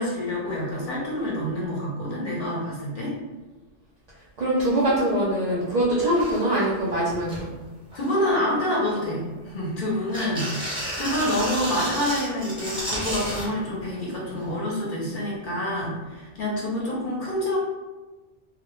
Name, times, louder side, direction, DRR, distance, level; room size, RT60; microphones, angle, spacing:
voice 1, 0.0-3.1 7.9-17.6, left 1 dB, 55° left, -5 dB, 0.7 m, -27 dB
voice 2, 4.4-7.4, right 1 dB, 60° right, -7 dB, 0.4 m, -23 dB
sound 1, 5.7-5.8 6.0-6.7 7.1-7.5 7.9-8.4 8.9-9.7 10.1-13.5 14.5-14.6, equal, 5° right, 0.5 m, -32 dB
2.1 x 2.0 x 2.9 m, 1.2 s
omnidirectional pair, 1.2 m